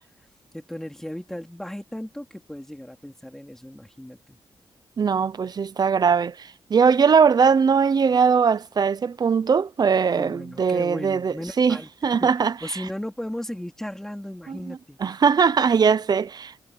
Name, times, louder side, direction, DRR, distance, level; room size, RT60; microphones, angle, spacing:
voice 1, 0.5-4.4 10.2-15.0, left 1 dB, 5° left, 3.9 m, -36 dB
voice 2, 5.0-11.8 12.0-12.5 14.5-16.6, right 6 dB, 45° right, 0.7 m, -20 dB
wide cardioid pair, 110°, 9 cm